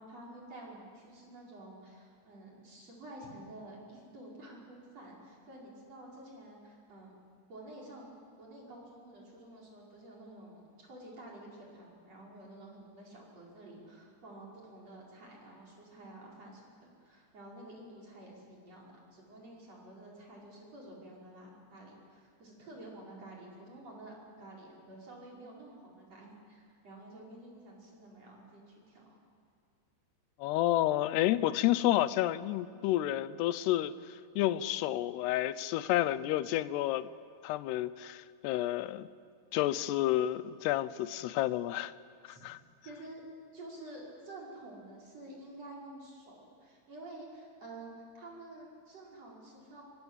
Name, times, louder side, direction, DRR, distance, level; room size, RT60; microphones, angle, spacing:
voice 1, 0.0-7.1 7.5-8.1 8.4-29.2 42.3-42.4 42.8-43.2 43.5-49.8, right 1 dB, 35° right, -3 dB, 6.0 m, -50 dB
voice 2, 30.4-37.1 37.4-39.1 39.5-41.9 42.3-42.6, left 14 dB, 80° left, 15 dB, 2.7 m, -30 dB
25.5 x 25.0 x 8.1 m, 2.2 s
omnidirectional pair, 5.1 m